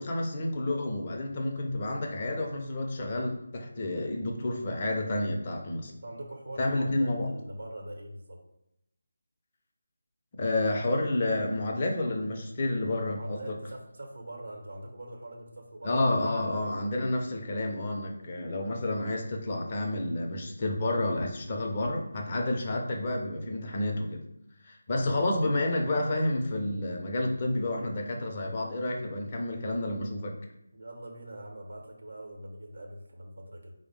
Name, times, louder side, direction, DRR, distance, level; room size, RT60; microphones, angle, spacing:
voice 1, 0.0-5.9 6.6-7.3 10.4-13.5 15.8-24.2 24.6-30.3, left 1 dB, 30° left, 1 dB, 0.5 m, -30 dB
voice 2, 5.9-8.4 13.1-16.1 30.7-33.7, right 1 dB, 55° right, 1 dB, 0.9 m, -43 dB
4.7 x 2.0 x 3.2 m, 0.80 s
figure-of-eight pair, 160°, 0 cm